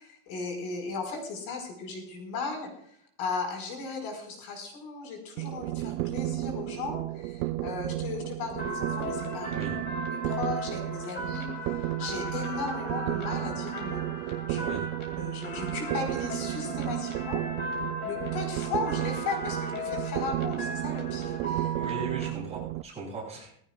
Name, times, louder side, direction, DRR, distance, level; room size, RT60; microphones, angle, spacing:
voice 1, 0.0-9.5 10.1-14.1 14.5-14.6 15.2-17.4 18.0-21.7, left 4 dB, 70° left, 3 dB, 5.1 m, -36 dB
sound 1, 5.4-22.8, right 17 dB, 85° right, 0.8 m, -33 dB
sound 2, 8.6-22.3, equal, 20° left, 2.8 m, -37 dB
voice 2, 21.7-23.5, right 4 dB, 15° right, -5 dB, 7.5 m, -37 dB
19.5 x 16.0 x 2.4 m, 0.64 s
cardioid pair, 180°, 47 cm